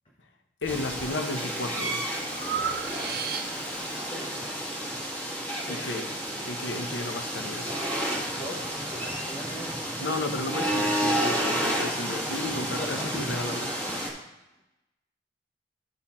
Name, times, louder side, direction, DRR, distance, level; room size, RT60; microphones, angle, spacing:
voice 1, 0.6-2.1 5.7-6.1 6.4-7.8 10.0-13.8, left 2 dB, 85° left, 6 dB, 0.9 m, -33 dB
Breathing, 0.6-1.1 1.6-3.8, right 6 dB, 55° right, 0.6 m, -34 dB
sound 1, 0.7-14.1, equal, 10° left, 1.8 m, -31 dB
voice 2, 4.0-4.3 5.6-5.9 8.1-10.0 12.0-12.1 12.7-13.2, equal, 30° left, -4 dB, 1.1 m, -40 dB
11.5 x 4.2 x 4.3 m, 0.97 s
head